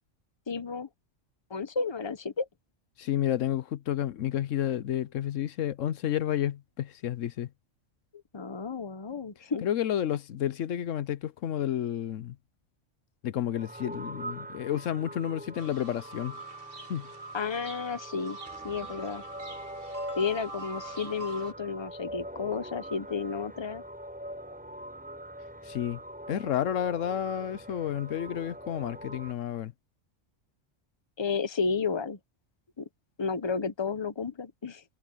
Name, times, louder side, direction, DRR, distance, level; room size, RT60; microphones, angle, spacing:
voice 1, 0.5-0.9 1.5-2.5 8.3-9.6 17.3-18.4 18.6-19.2 20.2-23.8 31.2-32.2 32.8-32.9 33.2-34.8, left 5 dB, 25° left, 1.0 m, -32 dB
voice 2, 3.0-7.5 9.6-12.4 13.2-16.4 16.9-17.1 25.6-26.0 26.3-29.7, left 10 dB, 80° left, 1.1 m, -31 dB
sound 1, 13.5-29.3, right 1 dB, 5° right, 7.0 m, -43 dB
sound 2, 15.6-21.5, right 2 dB, 45° right, 2.6 m, -43 dB
omnidirectional pair, 1.3 m